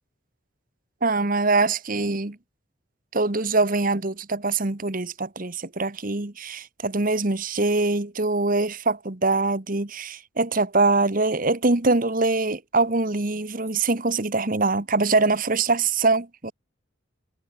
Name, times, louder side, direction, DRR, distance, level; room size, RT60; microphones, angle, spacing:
voice 1, 1.0-2.4 3.1-16.5, right 3 dB, 40° right, 1.3 m, -23 dB
head